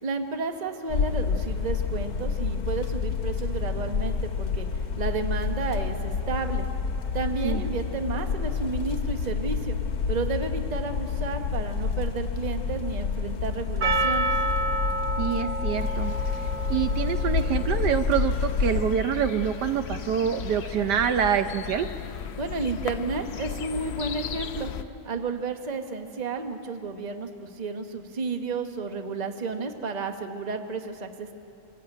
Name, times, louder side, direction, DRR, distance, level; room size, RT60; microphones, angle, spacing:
voice 1, 0.0-4.7 5.0-6.7 7.1-9.8 10.1-14.3 22.4-24.7 25.0-31.3, right 4 dB, 30° right, 6 dB, 1.0 m, -32 dB
sound 1, 0.9-19.0, left 5 dB, 60° left, 1.7 m, -29 dB
Percussion, 13.8-18.4, right 2 dB, 50° right, 1.1 m, -30 dB
voice 2, 15.2-16.1 16.7-21.9, right 8 dB, 70° right, 9 dB, 1.3 m, -26 dB
sound 2, 15.8-24.8, left 7 dB, 80° left, 0.5 m, -36 dB
24.5 x 15.0 x 9.0 m, 2.8 s
omnidirectional pair, 1.9 m